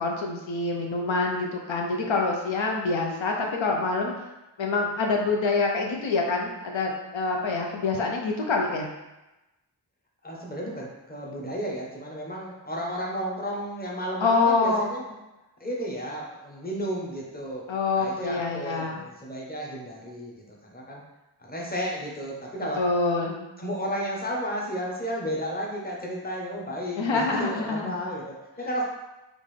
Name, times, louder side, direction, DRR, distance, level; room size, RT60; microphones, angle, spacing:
voice 1, 0.0-4.3 4.6-8.9 14.2-14.9 17.7-19.0 22.8-23.4 27.0-28.0, left 3 dB, 85° left, 0 dB, 0.6 m, -26 dB
voice 2, 10.2-15.0 15.6-17.7 17.9-21.0 21.5-22.9 23.6-28.8, equal, 20° left, -3 dB, 0.8 m, -33 dB
3.7 x 2.5 x 3.2 m, 1.0 s
wide cardioid pair, 50°, 45 cm